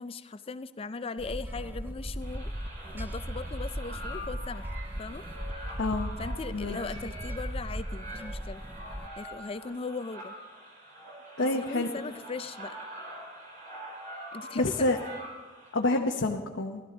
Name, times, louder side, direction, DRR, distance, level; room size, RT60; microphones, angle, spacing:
voice 1, 0.0-2.5 2.9-4.6 5.0-5.3 6.2-8.6 9.2-10.3 11.4-12.8 14.3-14.9, left 4 dB, 30° left, 13 dB, 0.4 m, -38 dB
sound 1, 1.2-9.1, equal, 10° right, 0.6 m, -37 dB
sound 2, 2.2-15.7, equal, 45° right, 4.0 m, -44 dB
voice 2, 5.8-6.1 6.5-6.8 11.4-11.9 14.5-15.0 15.7-16.8, left 2 dB, 85° left, 1 dB, 0.9 m, -27 dB
17.0 x 12.5 x 3.9 m, 1.4 s
head